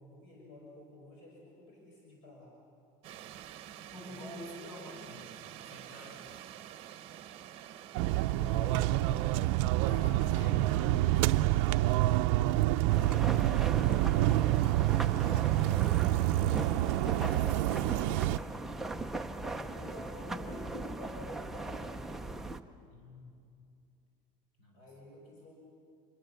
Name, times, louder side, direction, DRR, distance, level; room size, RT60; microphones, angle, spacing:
voice 1, 0.0-2.5 4.1-4.8 8.2-9.3 15.5-17.2 17.7-18.7 19.6-22.3 24.7-25.5, left 2 dB, 45° left, -2 dB, 5.7 m, -50 dB
sound 1, 3.0-12.0, right 11 dB, 40° right, 1.0 m, -49 dB
voice 2, 3.9-5.3 5.6-6.2 8.5-8.7 9.8-14.8 17.2-18.1 22.9-23.4 24.6-24.9, left 1 dB, 75° left, 0 dB, 7.8 m, -50 dB
sound 2, 8.0-18.4, right 16 dB, 70° right, 0.5 m, -27 dB
sound 3, 12.9-22.6, right 2 dB, ahead, 0.5 m, -39 dB
26.0 x 23.5 x 6.9 m, 2.4 s
cardioid pair, 175°, 15 cm